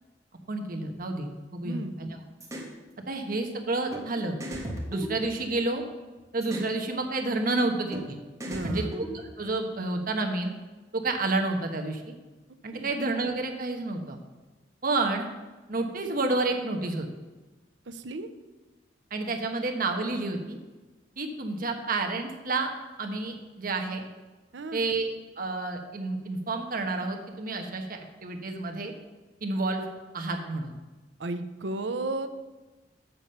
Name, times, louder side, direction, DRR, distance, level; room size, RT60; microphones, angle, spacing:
voice 1, 0.5-2.1 3.1-4.4 4.9-5.8 6.3-8.2 8.6-10.5 10.9-12.1 12.6-14.2 14.8-15.3 15.7-17.1 19.1-20.6 21.2-22.7 23.0-24.0 24.7-25.1 25.4-28.9 29.4-29.8 30.1-30.7, right 2 dB, 50° right, 4 dB, 1.1 m, -30 dB
voice 2, 1.6-2.0 8.5-9.0 12.7-12.9 17.9-18.3 24.5-24.9 31.2-32.3, right 2 dB, 70° right, 10 dB, 0.7 m, -34 dB
sound 1, 2.4-2.7 3.9-4.0 4.4-5.8 6.4-6.7 7.9-8.0 8.4-9.5, equal, 15° right, 1.2 m, -36 dB
7.3 x 7.0 x 5.5 m, 1.2 s
head